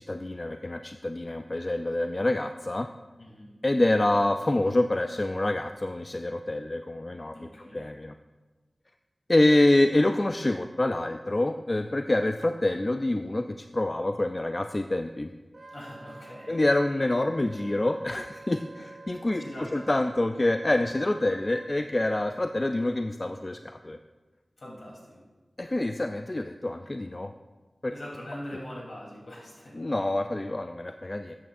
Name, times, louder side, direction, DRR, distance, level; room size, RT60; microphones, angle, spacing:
voice 1, 0.0-2.9 3.6-8.1 9.3-15.3 16.5-24.0 25.6-27.3 27.8-27.9 29.8-31.3, left 1 dB, 35° left, 7 dB, 0.3 m, -26 dB
voice 2, 3.2-3.5 7.3-7.8 15.7-16.6 19.3-19.9 24.6-25.2 27.9-29.8, left 1 dB, 65° left, -4 dB, 3.2 m, -42 dB
Wind instrument woodwind instrument, 15.5-21.7, right 3 dB, 55° right, 0.5 m, -48 dB
13.5 x 8.4 x 2.5 m, 1.3 s
wide cardioid pair, 70°, 0 cm